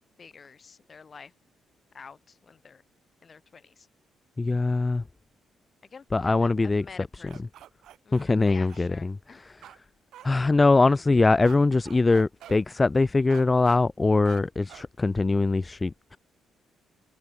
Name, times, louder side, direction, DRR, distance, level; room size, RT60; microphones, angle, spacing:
voice 1, 0.2-1.3 1.9-2.8 3.2-3.9 5.9-7.5 8.0-9.4, left 5 dB, 40° left, 7.0 m, -48 dB
voice 2, 4.4-5.0 6.1-6.8 8.1-9.2 9.5-9.6 10.2-16.2, left 3 dB, 20° left, 0.3 m, -22 dB
sound 1, 7.3-8.8 9.6-9.8 10.1-10.3 11.4-11.6 11.8-12.6 13.3-13.8 14.2-14.4 14.7-14.9, right 12 dB, 75° right, 3.9 m, -47 dB
cardioid pair, 90°, 0 cm